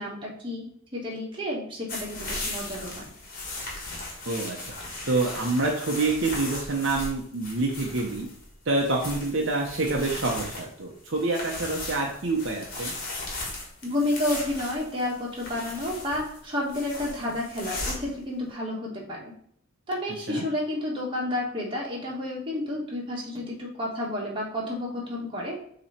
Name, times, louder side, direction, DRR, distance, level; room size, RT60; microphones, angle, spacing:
voice 1, 0.0-3.0 13.8-19.3 19.9-25.6, left 1 dB, 25° right, -3 dB, 1.7 m, -31 dB
sound 1, 1.9-18.2, left 2 dB, 40° left, 1.7 m, -37 dB
voice 2, 4.3-4.6 5.1-8.3 8.7-12.9 20.3-20.5, right 3 dB, 60° right, 0 dB, 0.8 m, -27 dB
7.1 x 3.1 x 4.4 m, 0.64 s
head